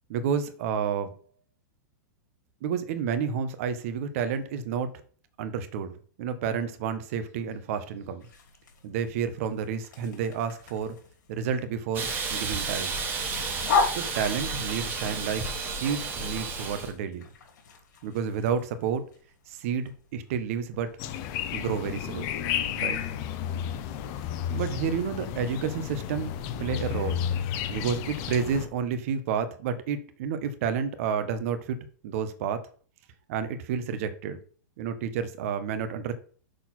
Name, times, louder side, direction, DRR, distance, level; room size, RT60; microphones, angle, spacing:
voice 1, 0.1-1.1 2.6-4.9 5.4-8.3 8.8-10.9 11.3-13.0 13.9-15.5 15.8-17.2 18.0-19.0 19.5-20.9 21.5-22.3 22.8-23.0 24.5-26.3 26.6-27.2 27.7-31.8 32.0-32.6 33.3-34.4 34.8-36.1, right 7 dB, 50° right, 10 dB, 1.1 m, -30 dB
sound 1, 8.2-25.0, left 5 dB, 80° left, 3.5 m, -38 dB
Hiss, 11.9-16.9, right 4 dB, 20° right, 1.3 m, -32 dB
sound 2, 21.0-28.6, left 9 dB, 35° left, 0.9 m, -32 dB
6.6 x 4.4 x 5.9 m, 0.43 s
supercardioid pair, 160°, 10 cm